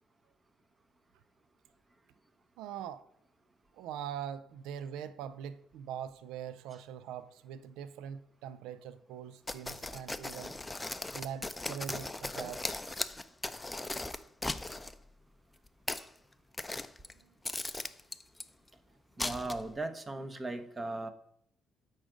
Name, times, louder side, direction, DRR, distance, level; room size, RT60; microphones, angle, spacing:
voice 1, 2.6-3.0 3.8-10.5 11.1-12.8 17.2-17.3, right 9 dB, 80° right, 0.4 m, -42 dB
sound 1, 9.5-14.9 15.7-16.1 16.5-17.1 17.4-18.4 19.2-19.8, left 2 dB, 15° left, 0.5 m, -38 dB
voice 2, 19.2-21.1, right 2 dB, 30° right, 1.0 m, -37 dB
8.6 x 3.9 x 5.1 m
supercardioid pair, 60°, 0 cm